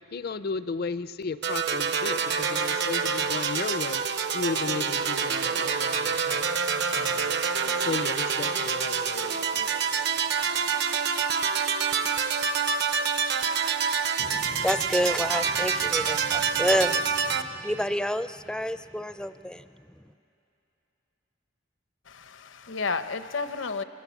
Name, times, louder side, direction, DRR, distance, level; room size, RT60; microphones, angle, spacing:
voice 1, 0.1-4.0 4.3-6.5 6.9-7.4 7.8-9.7, left 4 dB, 55° left, 14 dB, 0.6 m, -34 dB
sound 1, 1.4-17.4, right 6 dB, 60° right, 0.9 m, -27 dB
voice 2, 14.2-19.7, equal, 5° left, 11 dB, 0.5 m, -29 dB
voice 3, 22.1-23.8, left 4 dB, 75° left, 10 dB, 0.9 m, -32 dB
27.5 x 25.0 x 7.2 m, 2.8 s
head